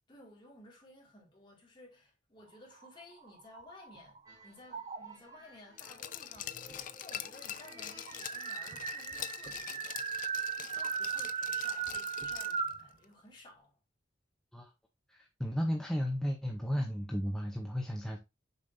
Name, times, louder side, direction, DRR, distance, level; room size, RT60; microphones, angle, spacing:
voice 1, 0.1-10.0 10.5-13.8, left 1 dB, 25° left, 2.4 m, -56 dB
sound 1, 2.7-4.2 4.7-5.4 6.4-6.5 6.7-6.8 7.1-12.9, right 6 dB, 35° right, 0.5 m, -37 dB
sound 2, 4.3-8.8, right 1 dB, 20° right, 3.4 m, -58 dB
Glass, 5.8-12.7 13.0-13.1, left 10 dB, 45° left, 0.5 m, -44 dB
voice 2, 15.1-18.2, equal, 5° left, 0.7 m, -34 dB
6.9 x 5.2 x 2.6 m
head